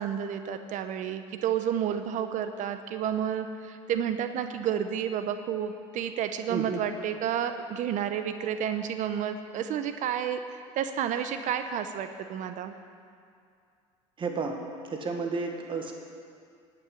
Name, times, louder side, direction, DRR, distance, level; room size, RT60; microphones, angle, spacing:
voice 1, 0.0-10.4 10.7-12.7, right 9 dB, 55° right, 9 dB, 0.9 m, -30 dB
voice 2, 6.5-6.8 14.2-14.6 14.9-15.9, right 4 dB, 30° right, 3 dB, 1.7 m, -31 dB
12.0 x 8.8 x 8.2 m, 2.3 s
supercardioid pair, 90°, 16 cm